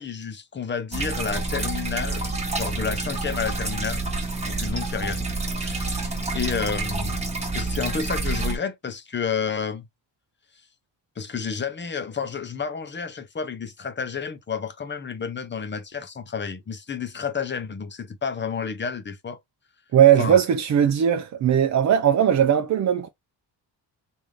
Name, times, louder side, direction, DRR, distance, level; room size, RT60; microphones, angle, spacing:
voice 1, 0.0-2.3 2.5-4.0 4.5-5.3 5.6-7.2 7.5-9.9 11.2-19.4 20.2-20.4, left 6 dB, 25° left, 0.7 m, -30 dB
sound 1, 0.9-8.6, right 3 dB, 15° right, 1.2 m, -28 dB
voice 2, 19.9-23.1, right 9 dB, 40° right, 0.5 m, -19 dB
3.6 x 2.6 x 3.2 m
cardioid pair, 115°, 42 cm